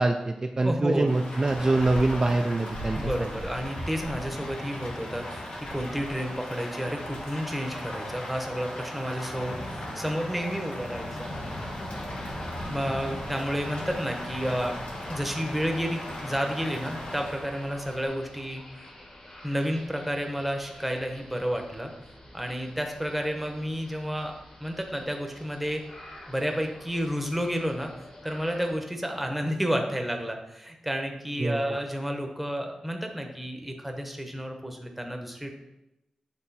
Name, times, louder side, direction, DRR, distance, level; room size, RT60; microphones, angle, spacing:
voice 1, 0.0-3.0 31.4-31.8, right 2 dB, 35° right, 4 dB, 0.4 m, -24 dB
voice 2, 0.6-1.2 2.9-11.3 11.8-11.9 12.7-14.8 15.1-18.9 19.4-21.9 22.3-24.3 24.6-25.8 26.3-27.9 28.2-35.5, equal, 5° right, 3 dB, 0.9 m, -31 dB
Rain, 1.1-18.1, left 1 dB, 80° left, 1.6 m, -37 dB
sound 1, 11.1-28.8, left 1 dB, 50° left, 1.9 m, -49 dB
7.8 x 3.4 x 4.1 m, 0.93 s
cardioid pair, 75°, 2 cm